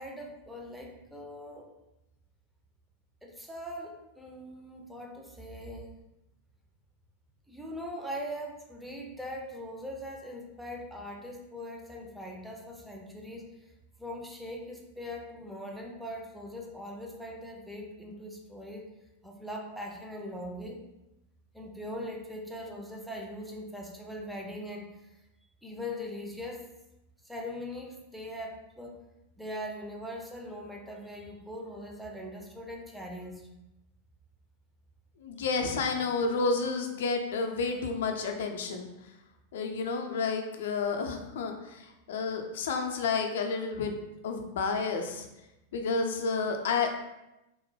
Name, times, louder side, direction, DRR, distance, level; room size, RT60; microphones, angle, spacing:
voice 1, 0.0-1.7 3.2-5.9 7.5-13.5 14.0-18.9 19.2-20.8 21.5-24.9 25.6-26.6 27.2-29.0 29.4-33.5, equal, ahead, 0 dB, 0.4 m, -41 dB
voice 2, 35.2-38.9 39.5-44.0 44.2-45.3 45.7-47.0, left 4 dB, 60° left, 4 dB, 0.4 m, -30 dB
2.9 x 2.0 x 3.1 m, 0.93 s
figure-of-eight pair, 90°, 0 cm